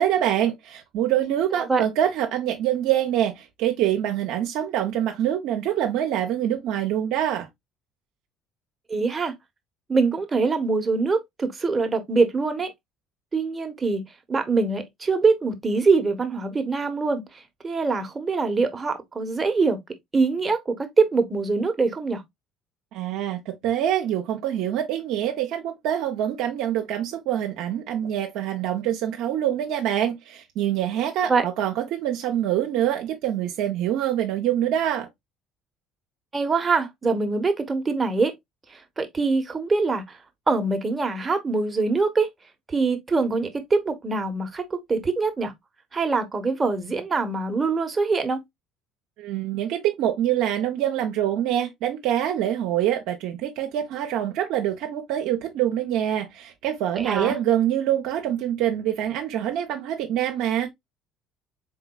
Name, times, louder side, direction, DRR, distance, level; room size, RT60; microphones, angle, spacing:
voice 1, 0.0-7.5 22.9-35.1 49.2-60.7, right 11 dB, 70° right, 0.6 m, -25 dB
voice 2, 8.9-9.3 9.9-12.7 13.3-14.0 14.3-17.2 17.6-19.8 20.1-22.2 31.3-31.4 36.3-38.3 38.7-40.2 40.5-42.3 42.7-45.5 45.9-48.4 56.9-57.4, right 4 dB, 25° right, 1.0 m, -23 dB
3.8 x 3.8 x 2.2 m
supercardioid pair, 75°, 0 cm